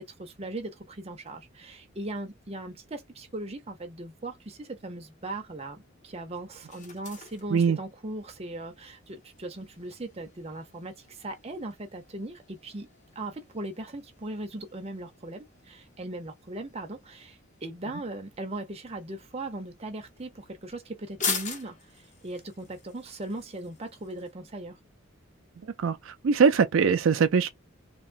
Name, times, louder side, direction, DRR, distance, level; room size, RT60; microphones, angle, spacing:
voice 1, 0.0-12.9 13.2-21.8 22.2-24.8, right 2 dB, 30° right, 0.7 m, -39 dB
sound 1, 4.7-24.3, left 5 dB, 35° left, 0.9 m, -43 dB
voice 2, 25.8-27.5, right 6 dB, 80° right, 0.4 m, -22 dB
2.9 x 2.2 x 2.5 m
head